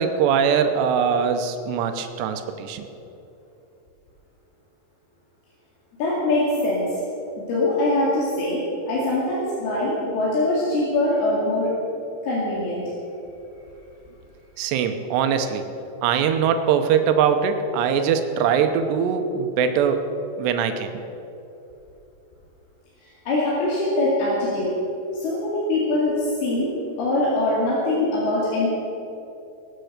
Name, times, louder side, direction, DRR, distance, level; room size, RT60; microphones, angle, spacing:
voice 1, 0.0-2.9 14.6-15.7 16.0-20.1 20.4-20.9, right 7 dB, 85° right, 7 dB, 3.1 m, -22 dB
voice 2, 6.0-7.0 7.4-11.7 12.2-12.8 23.0-24.7 25.1-28.7, left 2 dB, 70° left, -7 dB, 4.3 m, -23 dB
21.0 x 9.1 x 6.6 m, 2.9 s
omnidirectional pair, 4.8 m